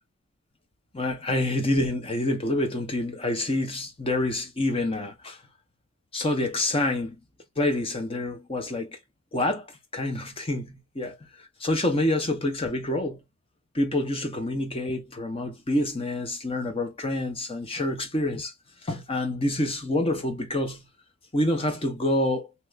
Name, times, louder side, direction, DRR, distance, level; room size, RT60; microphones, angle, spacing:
voice 1, 0.9-5.4 6.1-7.2 7.6-9.0 9.3-9.7 9.9-11.2 11.6-13.2 13.7-18.5 18.8-20.8 21.3-22.5, left 1 dB, 25° left, 0.7 m, -27 dB
2.9 x 2.5 x 3.2 m
head